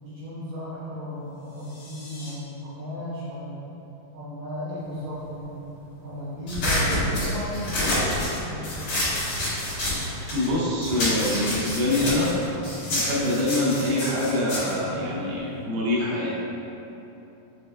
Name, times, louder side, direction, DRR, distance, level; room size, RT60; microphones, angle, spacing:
voice 1, 0.0-3.6 4.1-9.0, left 1 dB, 55° right, -14 dB, 2.4 m, -35 dB
sound 1, 1.3-2.3, left 2 dB, 75° left, 1.4 m, -47 dB
sound 2, 6.5-10.5 10.8-15.6, left 1 dB, 55° left, 2.5 m, -28 dB
voice 2, 10.3-12.3 12.9-16.3, left 1 dB, 80° right, -6 dB, 2.7 m, -25 dB
6.5 x 3.5 x 2.3 m, 3.0 s
omnidirectional pair, 4.2 m